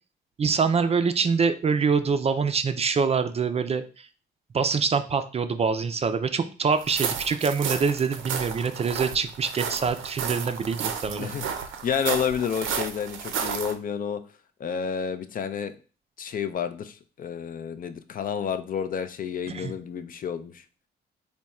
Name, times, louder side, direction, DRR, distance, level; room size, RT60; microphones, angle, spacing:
voice 1, 0.4-4.1 4.5-11.3 19.5-19.7, right 5 dB, 30° right, 9 dB, 0.4 m, -25 dB
sound 1, 6.8-13.7, right 7 dB, 85° right, 0.5 m, -32 dB
voice 2, 11.8-14.2 14.6-15.7 16.2-20.6, left 7 dB, 45° left, 11 dB, 0.4 m, -30 dB
3.5 x 2.2 x 4.1 m, 0.37 s
cardioid pair, 90°, 20 cm